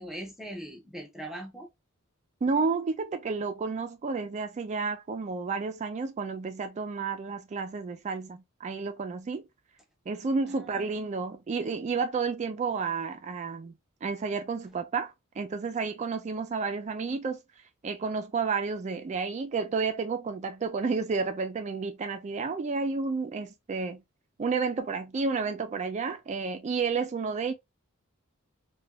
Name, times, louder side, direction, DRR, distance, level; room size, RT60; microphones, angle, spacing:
voice 1, 0.0-1.7 10.5-11.1, right 1 dB, ahead, 0.7 m, -41 dB
voice 2, 2.4-9.4 10.1-13.7 14.0-17.4 17.8-24.0 24.4-27.5, right 4 dB, 35° right, 0.3 m, -31 dB
3.3 x 2.2 x 2.2 m
head